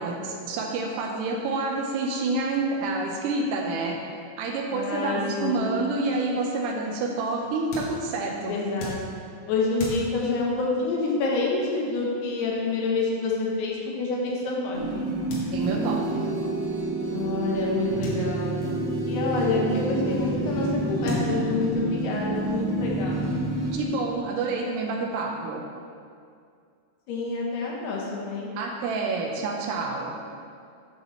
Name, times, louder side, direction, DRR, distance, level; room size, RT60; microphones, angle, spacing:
voice 1, 0.0-4.0 4.4-8.6 15.5-16.3 23.7-25.6 28.6-30.2, right 3 dB, 80° right, 1 dB, 2.7 m, -28 dB
voice 2, 4.7-5.7 8.4-9.0 9.5-15.0 17.1-18.6 19.1-23.2 27.1-28.5, left 3 dB, 75° left, -3 dB, 3.0 m, -27 dB
sound 1, 6.3-14.7 15.3-16.0 16.3-16.4 16.6-16.7 18.0-19.1 20.3-20.4 21.0-22.0, left 2 dB, 55° left, 2.4 m, -39 dB
sound 2, 14.7-23.8, right 2 dB, 65° right, 1.5 m, -28 dB
8.1 x 6.3 x 4.3 m, 2.3 s
omnidirectional pair, 5.0 m